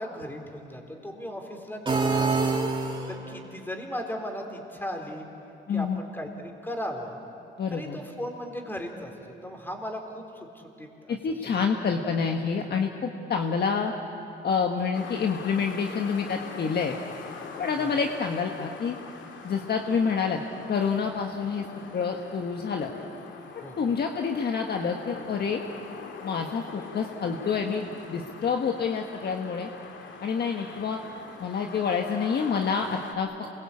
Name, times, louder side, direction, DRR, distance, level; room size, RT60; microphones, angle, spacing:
voice 1, 0.0-2.0 3.1-5.3 5.7-7.2 7.7-9.1 9.4-11.2 17.8-17.9 23.6-23.8, equal, 10° left, 3 dB, 4.1 m, -37 dB
sound 1, 1.9-3.4, right 4 dB, 25° right, 3.0 m, -26 dB
voice 2, 5.7-6.0 7.6-8.0 11.1-13.9 14.4-16.9 17.6-19.0 19.4-20.4 20.7-21.7 21.9-22.9 23.5-25.6 26.2-29.7 30.2-31.0 31.4-33.3, left 5 dB, 55° left, 3 dB, 1.5 m, -28 dB
sound 2, 14.9-33.2, left 5 dB, 70° left, 2.4 m, -43 dB
28.0 x 22.0 x 8.5 m, 2.8 s
cardioid pair, 90°, 20 cm